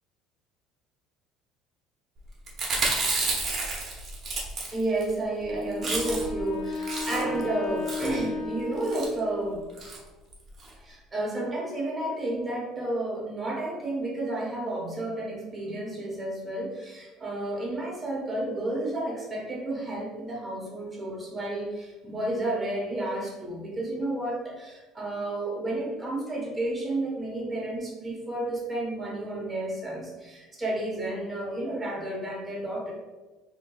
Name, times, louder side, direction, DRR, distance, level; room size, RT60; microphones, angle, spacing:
Chewing mastication, 2.5-5.1 5.4-5.5 5.7-6.4 6.7-7.4 7.8-8.2 8.8-9.1 9.8-10.0 10.3-10.4 10.6-10.7, right 3 dB, 40° right, 0.9 m, -30 dB
voice 1, 4.7-9.6 10.8-32.9, right 1 dB, 15° right, -4 dB, 1.1 m, -31 dB
Wind instrument woodwind instrument, 5.4-9.7, left 3 dB, 55° left, 0.5 m, -35 dB
4.4 x 2.9 x 2.3 m, 1.2 s
cardioid pair, 130°, 0 cm